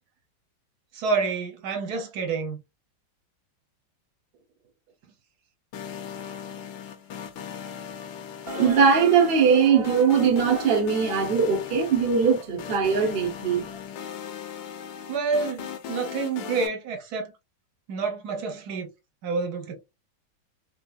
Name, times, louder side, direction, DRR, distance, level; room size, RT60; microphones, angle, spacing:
voice 1, 0.9-2.6 15.1-17.3 17.9-18.9 19.2-19.8, right 4 dB, 60° right, 1.2 m, -28 dB
sound 1, 5.7-16.7, left 8 dB, 80° left, 1.4 m, -38 dB
voice 2, 8.5-13.8, right 6 dB, 85° right, 0.5 m, -21 dB
3.4 x 2.8 x 2.2 m
omnidirectional pair, 2.2 m